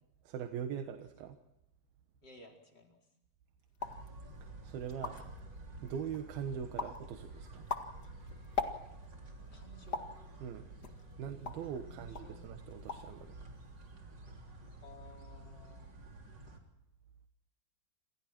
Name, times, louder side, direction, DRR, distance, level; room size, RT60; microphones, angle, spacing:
voice 1, 0.2-1.4 4.6-5.3 5.8-7.6 10.4-10.7 11.2-13.4, right 8 dB, 75° right, 6 dB, 3.1 m, -41 dB
voice 2, 2.2-3.0 9.5-10.1 11.6-12.5 14.8-15.9, left 2 dB, 25° left, 1 dB, 5.0 m, -57 dB
sound 1, 3.7-4.1 4.6-4.7 4.9-5.4 5.9-6.3 6.8-7.0 7.5-9.1 9.9-10.2 10.8-11.7 12.1-12.3 12.7-13.2 13.4-13.9, left 5 dB, 45° left, 1.3 m, -40 dB
sound 2, 3.8-16.6, right 2 dB, 30° right, 3.6 m, -51 dB
28.5 x 27.5 x 4.5 m, 0.83 s
omnidirectional pair, 4.5 m